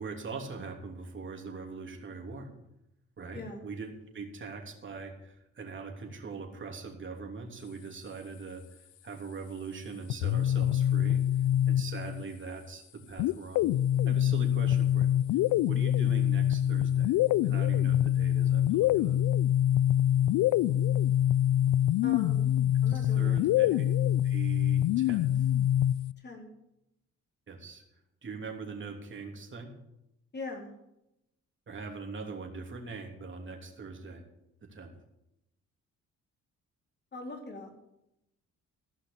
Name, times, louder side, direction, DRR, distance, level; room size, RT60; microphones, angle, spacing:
voice 1, 0.0-2.5 3.2-11.2 11.7-13.6 14.0-15.1 15.6-17.1 17.4-19.2 22.9-23.7 24.0-25.5 27.5-27.8 28.2-29.7 31.7-34.2 34.7-34.9, right 4 dB, 40° right, 1 dB, 3.2 m, -42 dB
sound 1, 10.1-12.2 13.2-26.1, left 11 dB, 70° left, 0.5 m, -25 dB
voice 2, 22.0-22.6 22.8-23.8 26.2-26.5 30.3-30.7 37.1-37.7, left 2 dB, 35° left, 0 dB, 4.1 m, -42 dB
15.5 x 5.8 x 8.8 m, 0.86 s
cardioid pair, 90°, 30 cm